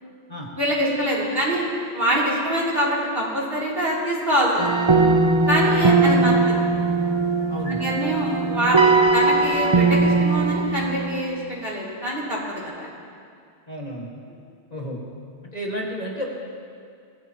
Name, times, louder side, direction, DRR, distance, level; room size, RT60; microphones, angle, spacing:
voice 1, 0.6-1.7 1.9-4.9 5.5-6.6 7.6-12.9, equal, 55° right, -5 dB, 3.7 m, -24 dB
sound 1, 4.6-11.2, right 3 dB, 30° right, 0.7 m, -20 dB
voice 2, 7.5-7.9 13.7-14.1 14.7-15.0 15.5-16.3, equal, 35° left, -3 dB, 2.2 m, -31 dB
24.5 x 17.0 x 3.0 m, 2.3 s
omnidirectional pair, 1.2 m